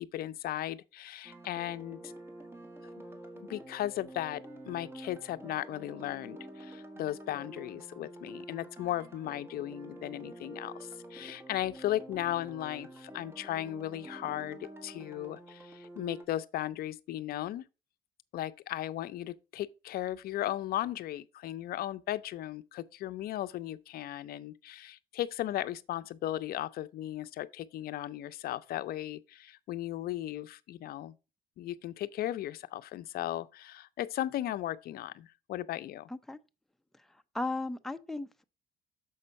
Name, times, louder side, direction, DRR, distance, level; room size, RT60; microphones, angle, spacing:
voice 1, 0.0-2.1 2.8-2.9 3.4-17.7 18.3-31.1 31.6-36.1, left 13 dB, 65° left, 0.5 m, -36 dB
sound 1, 1.2-16.2, right 1 dB, 15° right, 1.6 m, -48 dB
voice 2, 36.1-36.4 36.9-38.4, left 2 dB, ahead, 0.6 m, -37 dB
6.9 x 5.4 x 5.3 m
cardioid pair, 110°, 17 cm